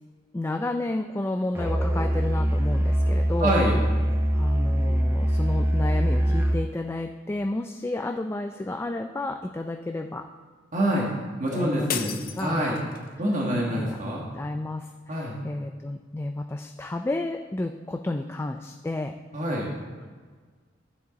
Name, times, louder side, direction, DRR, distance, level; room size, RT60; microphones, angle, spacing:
voice 1, 0.3-3.5 4.3-10.3 11.5-12.6 13.7-14.0 14.3-19.2, left 2 dB, 15° left, 5 dB, 0.3 m, -31 dB
Musical instrument, 1.5-6.7, equal, 15° right, 0.7 m, -23 dB
voice 2, 3.4-3.8 10.7-11.1 11.4-12.8 13.2-14.2 15.1-15.4 19.3-19.7, right 1 dB, 45° right, -3 dB, 1.5 m, -26 dB
sound 1, 11.9-13.2, left 8 dB, 50° left, 0.7 m, -34 dB
12.0 x 7.4 x 4.0 m, 1.5 s
head